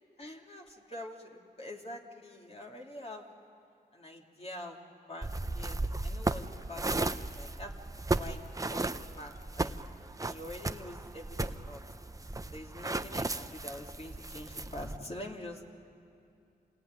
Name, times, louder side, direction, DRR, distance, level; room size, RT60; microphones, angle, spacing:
voice 1, 0.2-3.3 3.9-4.8 5.1-6.9 7.1-7.9 8.2-8.4 8.7-8.9 9.2-9.7 10.2-11.8 12.5-15.6, left 1 dB, 35° left, 0 dB, 2.8 m, -45 dB
sound 1, 5.2-15.0, right 2 dB, 20° right, 0.8 m, -35 dB
28.0 x 19.0 x 9.7 m, 2.6 s
cardioid pair, 60°, 17 cm